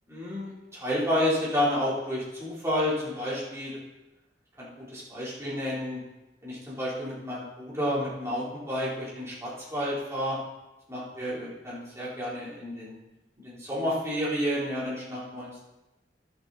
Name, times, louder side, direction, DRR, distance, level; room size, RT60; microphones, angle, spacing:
voice 1, 0.1-3.8 4.6-6.0 6.4-10.4 10.9-13.0 13.4-15.6, equal, 15° right, -8 dB, 3.8 m, -30 dB
12.5 x 8.0 x 4.2 m, 0.98 s
head